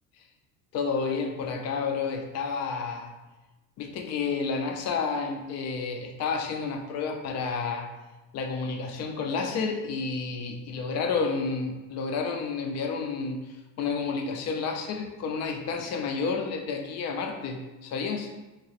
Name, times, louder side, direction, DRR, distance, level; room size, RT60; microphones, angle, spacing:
voice 1, 0.7-3.1 3.8-7.9 8.3-18.3, left 5 dB, 45° left, 4 dB, 0.4 m, -30 dB
2.9 x 2.9 x 2.9 m, 1.1 s
cardioid pair, 155°, 37 cm